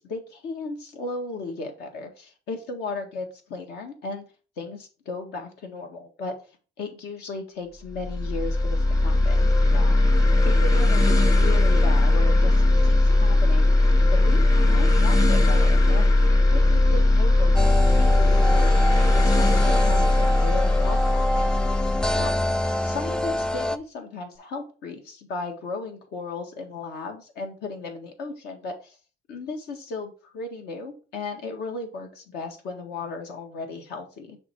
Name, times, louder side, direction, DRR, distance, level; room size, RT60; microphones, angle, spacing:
voice 1, 0.0-4.2 4.6-6.4 6.8-10.0 10.4-13.7 14.1-16.2 16.5-18.7 19.1-21.6 22.1-22.4 22.8-29.0 29.3-34.4, left 3 dB, 75° left, 3 dB, 1.7 m, -35 dB
sound 1, 7.9-23.4, left 2 dB, 20° left, 0.9 m, -19 dB
sound 2, 17.5-23.8, left 1 dB, 5° left, 0.4 m, -27 dB
6.2 x 3.5 x 4.6 m, 0.35 s
cardioid pair, 110°, 17 cm